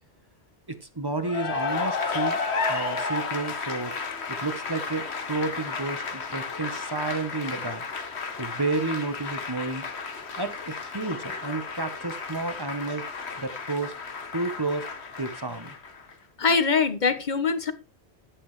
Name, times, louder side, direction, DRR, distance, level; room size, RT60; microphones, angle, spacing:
voice 1, 0.7-2.4 2.7-3.9 4.3-7.8 8.4-9.9 10.4-13.0 13.4-13.9 14.3-14.9 15.2-15.7, right 3 dB, 25° right, 1.0 m, -31 dB
Cheering / Applause, 1.2-16.1, left 4 dB, 85° left, 1.7 m, -33 dB
voice 2, 16.4-17.7, left 5 dB, 45° left, 1.2 m, -23 dB
11.0 x 10.0 x 3.2 m
omnidirectional pair, 1.1 m